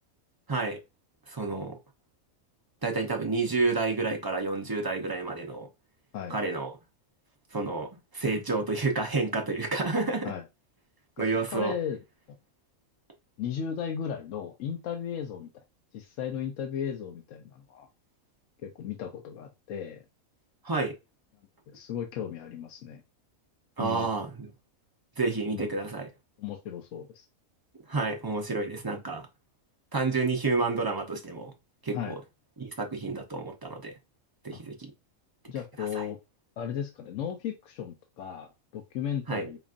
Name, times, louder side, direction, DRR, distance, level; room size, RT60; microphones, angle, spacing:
voice 1, 0.5-0.8 1.3-1.8 2.8-5.7 6.3-6.7 7.5-10.3 11.2-11.7 20.6-20.9 23.8-24.5 25.2-26.1 27.9-29.3 29.9-31.5 31.8-32.2 32.6-33.9 34.4-34.9 35.8-36.0 39.3-39.4, right 3 dB, 35° right, 0.4 m, -30 dB
voice 2, 11.5-12.0 12.3-12.4 13.4-15.5 15.9-17.9 18.6-20.0 21.7-23.0 23.8-24.1 25.5-25.7 26.4-27.3 31.9-32.2 34.5-34.6 35.5-36.2 36.6-39.6, left 8 dB, 70° left, 1.0 m, -35 dB
5.1 x 2.5 x 2.4 m
omnidirectional pair, 1.4 m